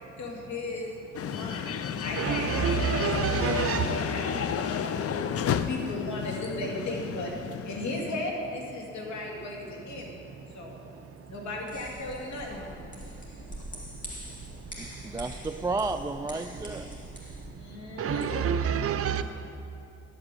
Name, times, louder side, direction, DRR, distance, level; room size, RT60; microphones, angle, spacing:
voice 1, 0.2-0.9 1.2-5.2 5.7-7.3 7.6-10.1 10.5-10.8 11.3-12.6 17.6-19.0, left 2 dB, 70° left, -1 dB, 2.5 m, -36 dB
sound 1, 1.1-8.2, left 8 dB, 50° left, 0.6 m, -32 dB
voice 2, 2.2-4.0 18.0-19.2, right 8 dB, 50° right, 9 dB, 0.7 m, -27 dB
sound 2, 11.7-17.5, equal, 25° left, 2.7 m, -43 dB
voice 3, 14.8-17.1 18.0-18.1, right 3 dB, 10° right, 8 dB, 0.3 m, -33 dB
10.5 x 8.7 x 6.8 m, 2.6 s
cardioid pair, 90°, 30 cm